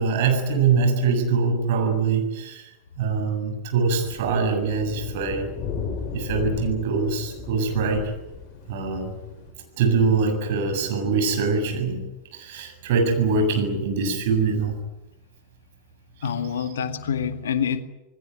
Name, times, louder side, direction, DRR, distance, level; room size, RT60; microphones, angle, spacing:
voice 1, 0.0-2.7 3.0-5.5 6.1-8.1 8.7-9.2 9.8-12.0 12.3-14.7 16.6-16.7, right 4 dB, 50° right, 5 dB, 7.4 m, -23 dB
sound 1, 4.0-9.5, left 5 dB, 35° left, 7.5 m, -35 dB
voice 2, 16.2-17.8, left 7 dB, 65° left, 9 dB, 2.0 m, -26 dB
28.0 x 20.5 x 9.4 m, 1.0 s
figure-of-eight pair, 90°, 0 cm